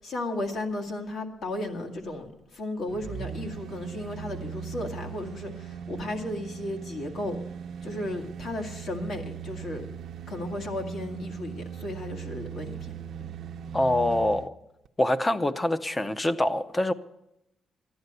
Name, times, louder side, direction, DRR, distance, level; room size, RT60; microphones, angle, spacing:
voice 1, 0.0-7.4 7.8-9.9 10.3-12.9, left 1 dB, 60° left, 3 dB, 2.0 m, -34 dB
sound 1, 2.9-14.5 14.9-15.0, right 8 dB, 65° right, 0.6 m, -39 dB
voice 2, 13.7-14.5 15.0-16.9, left 1 dB, 15° left, 12 dB, 0.6 m, -25 dB
15.0 x 11.0 x 6.7 m, 0.86 s
cardioid pair, 150°, 0 cm